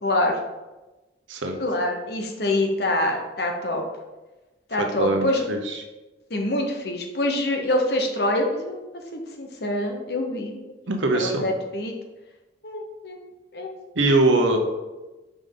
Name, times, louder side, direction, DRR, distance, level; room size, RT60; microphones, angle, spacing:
voice 1, 0.0-0.4 1.6-3.8 4.7-5.4 6.3-8.8 9.1-10.8 11.1-12.0 12.6-13.2 13.5-13.7, left 1 dB, 55° left, 3 dB, 0.9 m, -25 dB
voice 2, 4.8-5.8 10.9-11.5 14.0-14.6, right 2 dB, 85° right, 4 dB, 0.9 m, -22 dB
5.1 x 5.1 x 3.9 m, 1.1 s
head